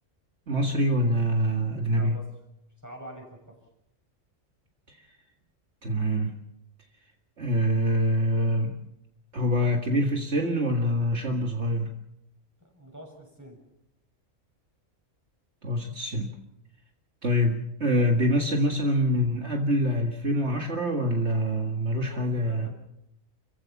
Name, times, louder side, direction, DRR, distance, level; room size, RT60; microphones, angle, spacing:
voice 1, 0.5-2.2 4.9-5.0 5.8-6.4 7.4-8.7 9.3-11.9 15.6-16.3 17.2-22.7, equal, 60° right, 2 dB, 2.2 m, -25 dB
voice 2, 1.9-2.4 2.8-3.6 12.6-13.6 21.9-22.7, equal, 15° right, 1 dB, 7.1 m, -45 dB
29.5 x 15.5 x 7.2 m, 0.81 s
omnidirectional pair, 1.3 m